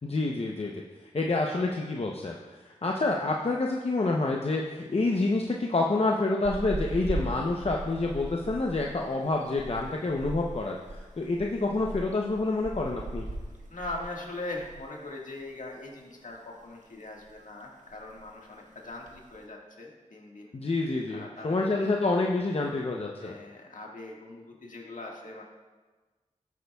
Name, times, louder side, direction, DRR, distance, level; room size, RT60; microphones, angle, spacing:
voice 1, 0.0-0.7 1.1-2.4 2.7-10.8 11.2-13.3 20.5-23.3, left 2 dB, 45° left, 0 dB, 0.7 m, -28 dB
sound 1, 6.4-15.0 15.2-15.4 15.8-16.7 17.0-17.4 17.6-17.7 17.9-18.4 18.9-19.4, right 2 dB, 65° right, 1.1 m, -39 dB
voice 2, 13.7-20.5 21.1-21.9 23.2-25.4, left 2 dB, 70° left, -1 dB, 1.7 m, -41 dB
13.5 x 8.2 x 2.3 m, 1.3 s
cardioid pair, 50°, 14 cm